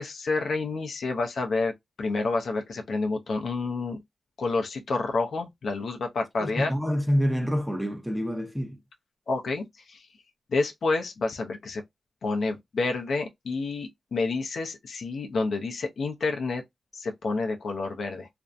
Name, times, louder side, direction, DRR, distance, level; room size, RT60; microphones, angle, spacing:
voice 1, 0.0-1.7 2.0-4.0 4.4-6.7 9.3-10.1 10.5-11.8 12.2-16.6 16.9-18.3, left 3 dB, 75° left, 0.5 m, -29 dB
voice 2, 6.4-8.8, equal, ahead, 0.6 m, -27 dB
2.5 x 2.0 x 2.4 m
cardioid pair, 55°, 0 cm